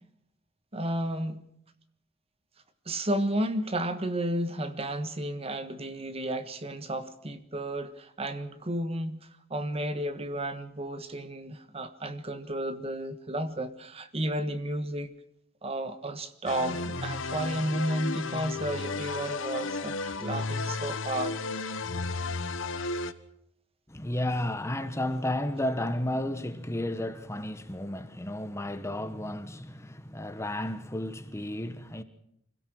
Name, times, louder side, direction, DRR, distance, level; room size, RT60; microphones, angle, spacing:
voice 1, 0.7-1.4 2.8-9.2 9.5-15.1 15.6-21.4, right 1 dB, 30° right, 1.4 m, -32 dB
sound 1, 16.5-23.1, left 3 dB, 80° left, 1.2 m, -33 dB
voice 2, 23.9-32.0, left 1 dB, 15° left, 1.1 m, -32 dB
25.5 x 17.0 x 6.3 m
head